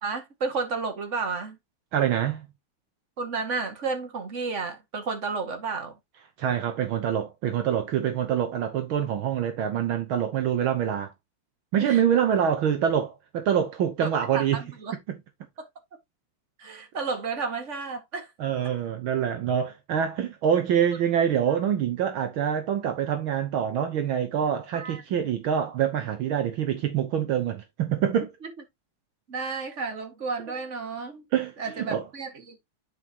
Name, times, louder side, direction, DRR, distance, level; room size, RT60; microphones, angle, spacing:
voice 1, 0.0-1.6 3.2-5.9 11.8-12.0 14.3-15.0 15.6-15.7 16.6-18.3 21.5-21.6 24.7-25.0 28.4-28.5 29.3-31.2 31.6-32.6, right 4 dB, 35° right, 2.1 m, -32 dB
voice 2, 1.9-2.4 6.4-11.1 11.7-14.6 18.4-28.3 31.3-32.1, right 9 dB, 70° right, 1.7 m, -25 dB
9.7 x 5.3 x 2.9 m
omnidirectional pair, 2.4 m